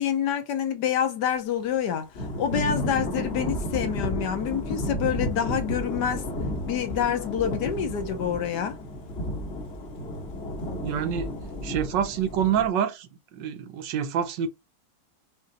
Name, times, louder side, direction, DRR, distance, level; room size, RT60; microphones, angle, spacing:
voice 1, 0.0-2.1 2.4-6.2 6.7-8.8, left 8 dB, 70° left, 1.4 m, -27 dB
Thunder / Rain, 2.1-12.7, equal, 45° left, 1.0 m, -32 dB
voice 2, 10.8-11.3 11.6-14.5, right 8 dB, 80° right, 1.3 m, -27 dB
5.2 x 3.1 x 2.7 m
omnidirectional pair, 2.0 m